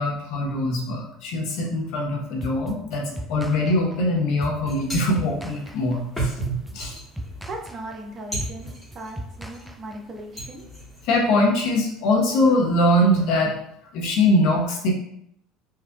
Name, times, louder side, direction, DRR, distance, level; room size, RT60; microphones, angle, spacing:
voice 1, 0.0-6.3 6.7-6.9 11.0-13.5 13.9-14.9, left 1 dB, 65° left, -1 dB, 1.0 m, -22 dB
sound 1, 2.4-10.2, equal, 5° right, 0.4 m, -38 dB
sound 2, 4.7-9.7 10.1-11.1, right 2 dB, 10° left, 1.4 m, -33 dB
voice 2, 7.5-10.6, right 1 dB, 45° right, 1 dB, 0.7 m, -38 dB
4.6 x 2.5 x 2.3 m, 0.73 s
hypercardioid pair, 85°, 0 cm